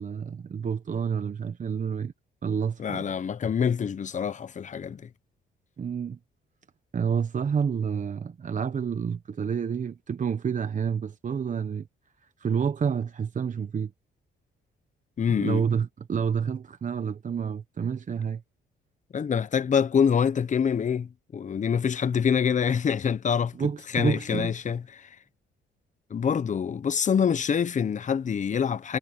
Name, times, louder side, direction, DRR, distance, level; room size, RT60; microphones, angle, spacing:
voice 1, 0.0-2.1 2.4-3.1 5.8-6.2 6.9-11.9 12.4-13.9 15.4-18.4 23.5-24.5, right 7 dB, 40° right, 1.0 m, -29 dB
voice 2, 2.8-5.0 15.2-15.6 19.1-25.1 26.1-29.0, left 7 dB, 40° left, 0.9 m, -26 dB
cardioid pair, 90°, 20 cm